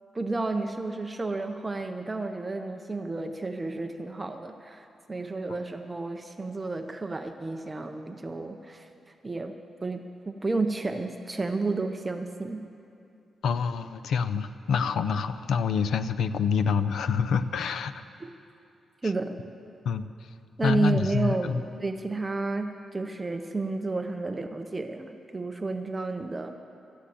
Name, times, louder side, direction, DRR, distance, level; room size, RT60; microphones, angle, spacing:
voice 1, 0.1-9.6 9.8-12.6 18.2-18.3 19.0-19.4 20.6-26.6, right 3 dB, 15° right, 6 dB, 0.6 m, -31 dB
voice 2, 13.4-17.9 19.9-20.1 20.6-21.6, left 6 dB, 75° left, 11 dB, 0.5 m, -26 dB
13.0 x 10.0 x 8.4 m, 2.6 s
wide cardioid pair, 165°, 0 cm